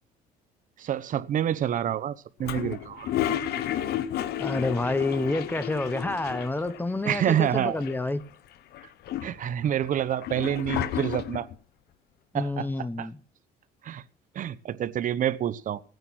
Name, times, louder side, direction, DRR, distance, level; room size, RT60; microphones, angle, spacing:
voice 1, 0.8-3.1 7.0-7.8 9.2-11.5 12.3-13.1 13.8-14.0 14.3-15.8, right 10 dB, 50° right, 0.9 m, -28 dB
Toilet flush, 2.4-6.8 7.1-7.2 7.4-8.2 8.7-11.6, left 11 dB, 70° left, 1.0 m, -32 dB
voice 2, 4.4-8.2 12.3-13.2, left 2 dB, 10° left, 1.0 m, -28 dB
16.0 x 9.5 x 6.2 m
cardioid pair, 110°, 17 cm